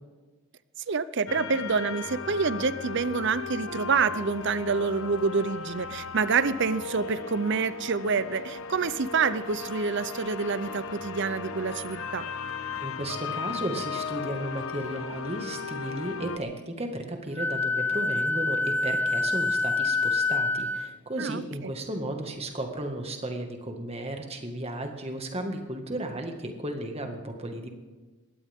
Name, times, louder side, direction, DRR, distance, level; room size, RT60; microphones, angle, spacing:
voice 1, 0.9-12.3 21.2-21.7, right 5 dB, 55° right, 15 dB, 0.6 m, -27 dB
sound 1, 1.3-16.4, left 5 dB, 70° left, 1.2 m, -36 dB
voice 2, 12.8-27.7, right 1 dB, 30° right, 4 dB, 1.9 m, -34 dB
Wind instrument woodwind instrument, 17.4-20.9, left 3 dB, 10° left, 0.4 m, -26 dB
21.5 x 17.0 x 3.7 m, 1.3 s
head